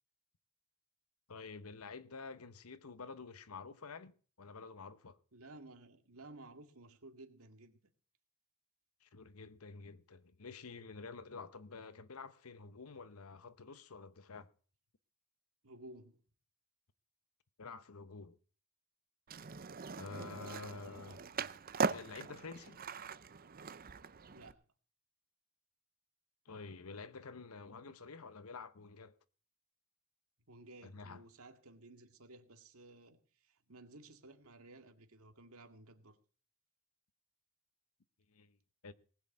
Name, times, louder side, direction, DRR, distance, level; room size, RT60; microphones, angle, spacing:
voice 1, 1.3-4.1 4.4-5.2 9.0-14.5 17.6-18.4 20.0-21.2 21.8-22.8 26.5-29.2 30.8-31.2 38.3-38.6 38.8-38.9, left 4 dB, 80° left, 0.9 m, -49 dB
voice 2, 5.3-7.8 15.6-16.2 24.3-24.7 30.5-36.2, right 2 dB, 80° right, 2.1 m, -55 dB
Skateboard, 19.3-24.5, right 5 dB, 40° right, 0.6 m, -40 dB
19.0 x 6.4 x 8.5 m
head